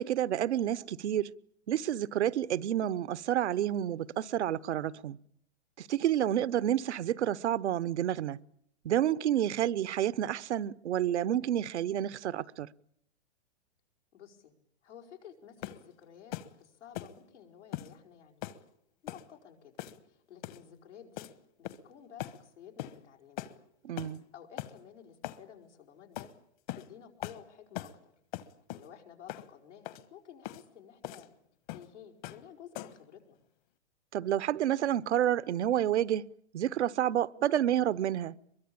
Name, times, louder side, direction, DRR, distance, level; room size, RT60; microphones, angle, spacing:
voice 1, 0.0-1.3 1.7-5.2 5.8-8.4 8.8-12.7 23.8-24.2 34.1-38.3, right 11 dB, 75° right, 0.9 m, -29 dB
voice 2, 14.1-14.6 14.8-18.5 19.0-19.8 20.1-21.3 21.6-23.5 24.0-26.3 26.7-28.1 28.7-31.3 31.7-33.4, left 8 dB, 90° left, 5.3 m, -53 dB
sound 1, 15.6-15.9 16.3-16.5 16.9-17.2 17.7-17.9 18.4-18.6 19.1-19.3 19.8-20.1 20.4-20.6 21.2-21.3 21.6-21.9 22.2-22.4 22.8-23.0 23.4-23.6 24.0-24.2 24.6-24.7 25.2-25.4 26.2-26.3 26.7-26.9 27.2-27.4 27.7-28.0 28.3-28.9 29.3-29.5 29.8-30.0 30.4-30.6 31.0-31.3 31.7-31.9 32.2-32.4 32.7-33.0, left 14 dB, 45° left, 1.4 m, -41 dB
23.5 x 22.5 x 8.7 m
hypercardioid pair, 145°, 34 cm